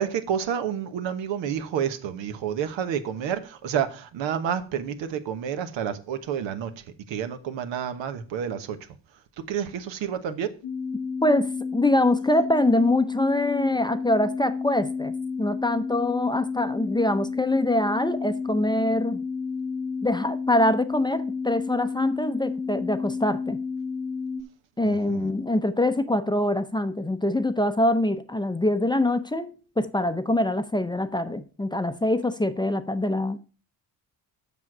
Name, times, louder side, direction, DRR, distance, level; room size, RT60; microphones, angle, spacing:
voice 1, 0.0-8.8 9.4-10.5 24.8-25.3, right 8 dB, 80° right, 1.1 m, -29 dB
sound 1, 10.6-24.4, left 5 dB, 75° left, 1.4 m, -31 dB
voice 2, 11.2-15.1 15.4-19.2 20.0-23.6 24.8-33.4, left 1 dB, 10° left, 0.6 m, -24 dB
7.2 x 6.4 x 6.0 m
cardioid pair, 90°, 44 cm